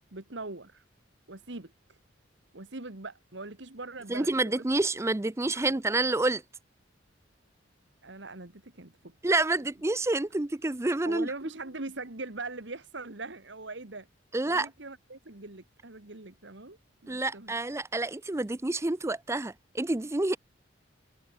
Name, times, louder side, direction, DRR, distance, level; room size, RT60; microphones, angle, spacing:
voice 1, 0.1-0.8 1.3-2.0 2.5-4.6 5.7-5.8 8.0-9.1 11.0-14.1 14.5-16.8 17.0-17.5, right 3 dB, 65° right, 1.9 m, -41 dB
voice 2, 4.1-6.4 9.2-11.3 14.3-14.7 17.1-20.4, right 2 dB, 15° right, 0.5 m, -28 dB
head